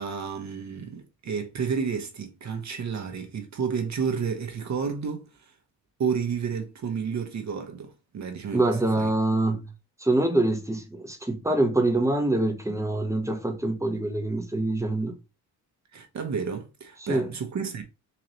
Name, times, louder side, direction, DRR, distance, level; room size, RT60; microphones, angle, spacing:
voice 1, 0.0-5.5 6.0-8.6 9.0-9.1 9.5-9.6 15.9-17.8, right 6 dB, 45° right, 0.9 m, -31 dB
voice 2, 8.5-9.7 10.0-15.2 17.1-17.3, right 2 dB, 10° right, 0.9 m, -25 dB
3.9 x 3.0 x 3.0 m
cardioid pair, 80°, 38 cm